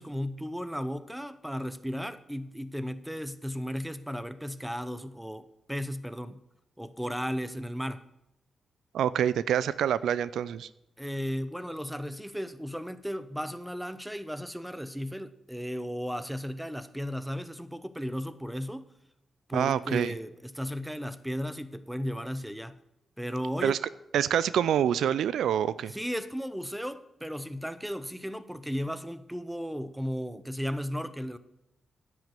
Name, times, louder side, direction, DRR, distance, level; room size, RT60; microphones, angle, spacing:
voice 1, 0.0-6.4 6.8-8.0 11.0-18.9 19.5-22.8 23.2-23.8 25.9-31.4, equal, 5° right, 14 dB, 0.8 m, -35 dB
voice 2, 8.9-10.7 19.5-20.1 23.6-23.8 24.1-25.9, right 9 dB, 85° right, 17 dB, 0.3 m, -26 dB
9.7 x 6.2 x 7.5 m, 0.88 s
supercardioid pair, 55°, 0 cm